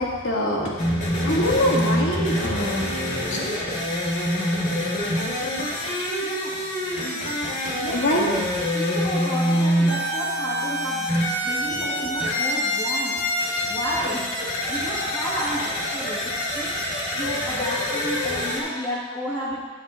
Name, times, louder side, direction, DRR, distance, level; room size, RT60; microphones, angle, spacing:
voice 1, 0.0-4.2 7.9-8.3 11.6-12.1 13.1-13.2 13.6-13.8 17.2-17.3, left 1 dB, 60° left, -3 dB, 1.7 m, -26 dB
sound 1, 0.8-18.6, equal, 40° left, 1.8 m, -26 dB
voice 2, 6.2-6.6 7.0-7.3 7.8-8.3 8.7-13.2 13.7-14.3 14.7-19.6, equal, 20° left, -8 dB, 1.3 m, -32 dB
9.4 x 9.1 x 3.0 m, 1.4 s
head